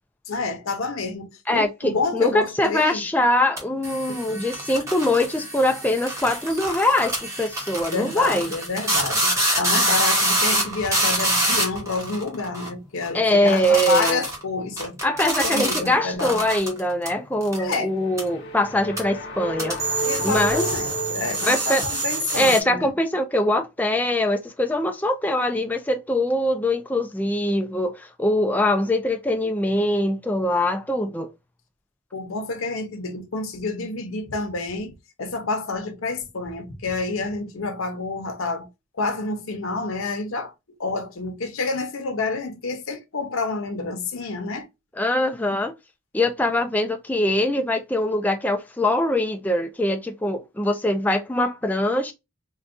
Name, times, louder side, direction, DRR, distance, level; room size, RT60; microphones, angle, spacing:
voice 1, 0.3-3.0 4.1-4.4 7.9-15.0 15.4-16.4 17.6-17.9 20.0-22.9 32.1-34.9 35.2-38.7 39.0-40.5 40.8-44.7, left 3 dB, 85° left, 0.8 m, -28 dB
voice 2, 1.5-8.5 13.1-14.2 15.0-19.8 20.2-20.7 21.5-21.8 22.3-31.3 45.0-45.7 46.1-52.1, left 1 dB, 10° left, 0.3 m, -22 dB
sound 1, 3.6-12.7 13.0-13.2 13.4-14.4 14.8-15.9 16.2-17.1 17.4-17.8 18.2-18.3 19.0-19.1 19.6-22.6, right 1 dB, 15° right, 0.9 m, -26 dB
sound 2, 17.9-22.2, right 1 dB, 50° left, 1.0 m, -32 dB
3.9 x 2.3 x 2.5 m
head